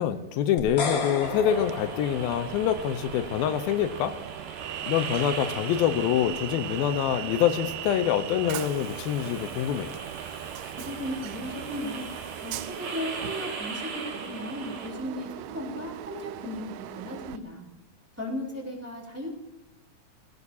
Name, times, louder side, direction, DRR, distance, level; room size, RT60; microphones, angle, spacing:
voice 1, 0.0-4.1 4.9-9.9, left 10 dB, 85° left, 9 dB, 2.6 m, -26 dB
sound 1, 0.6-2.9, left 4 dB, 50° left, 1.4 m, -33 dB
Train, 1.2-17.4, right 14 dB, 80° right, 2.1 m, -39 dB
sound 2, 1.5-14.9, right 5 dB, 60° right, 3.7 m, -40 dB
voice 2, 10.8-12.1 12.4-17.7 18.2-19.3, left 1 dB, 5° right, -1 dB, 3.1 m, -36 dB
23.5 x 16.5 x 2.8 m, 0.94 s
omnidirectional pair, 4.3 m